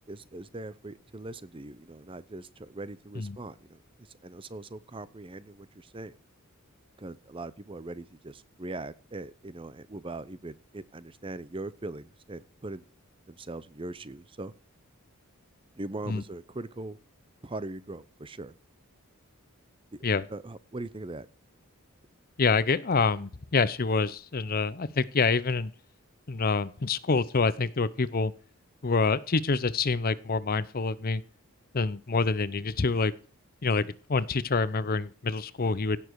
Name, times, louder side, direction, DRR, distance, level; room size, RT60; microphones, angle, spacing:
voice 1, 0.1-6.1 7.0-12.8 13.3-14.5 15.7-17.0 17.4-18.5 19.9-20.0 20.3-21.3, right 2 dB, 25° right, 16 dB, 0.6 m, -40 dB
voice 2, 22.4-25.7 26.3-28.3 28.8-31.2 31.7-33.1 33.6-36.0, left 4 dB, 45° left, 17 dB, 0.7 m, -26 dB
16.5 x 7.2 x 4.7 m, 0.39 s
head